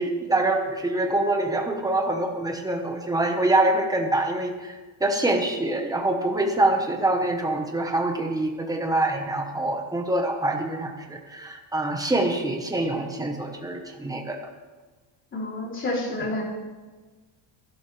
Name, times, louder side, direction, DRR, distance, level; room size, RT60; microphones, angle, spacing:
voice 1, 0.0-14.4, right 2 dB, 5° right, 3 dB, 1.2 m, -25 dB
voice 2, 15.3-16.4, left 2 dB, 25° left, -2 dB, 3.3 m, -29 dB
24.5 x 11.5 x 3.4 m, 1.3 s
cardioid pair, 175°, 48 cm